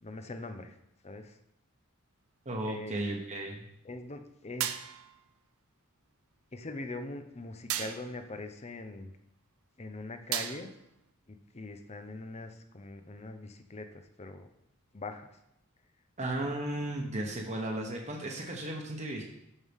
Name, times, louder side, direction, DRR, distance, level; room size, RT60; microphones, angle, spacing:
voice 1, 0.0-0.8 1.0-1.4 2.6-3.0 3.8-4.8 6.5-9.1 9.8-10.7 11.3-14.5 14.9-15.4 16.4-16.5, left 2 dB, 30° left, 7 dB, 0.7 m, -42 dB
voice 2, 2.4-3.7 16.2-19.2, right 1 dB, 35° right, -1 dB, 1.1 m, -35 dB
sound 1, 4.6-5.2 7.7-8.2 10.3-10.9, right 11 dB, 80° right, 0.6 m, -35 dB
12.5 x 5.5 x 3.6 m, 0.81 s
head